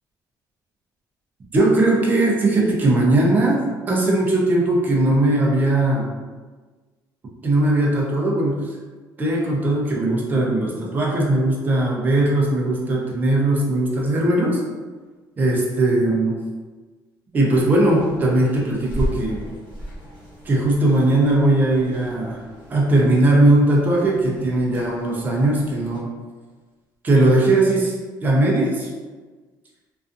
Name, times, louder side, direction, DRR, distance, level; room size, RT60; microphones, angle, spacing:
voice 1, 1.5-3.6 3.9-6.1 7.4-8.6 9.2-14.6 15.4-16.4 17.3-19.4 20.5-22.4 22.7-26.1 27.0-28.0 28.2-28.9, right 2 dB, 25° right, -3 dB, 0.5 m, -19 dB
sound 1, 17.4-26.0, left 1 dB, 20° left, 1.1 m, -36 dB
2.5 x 2.4 x 2.4 m, 1.4 s
cardioid pair, 145°, 8 cm